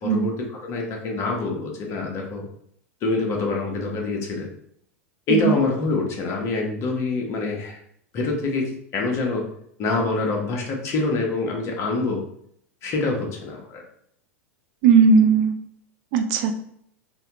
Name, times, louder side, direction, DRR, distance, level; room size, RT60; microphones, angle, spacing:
voice 1, 0.0-2.4 3.0-4.5 5.3-7.8 8.1-9.4 9.8-12.2 12.8-13.8, left 3 dB, 40° left, 0 dB, 0.9 m, -25 dB
voice 2, 14.8-15.5 16.1-16.5, right 5 dB, 50° right, 6 dB, 0.5 m, -17 dB
3.4 x 2.2 x 2.9 m, 0.68 s
figure-of-eight pair, 90°, 8 cm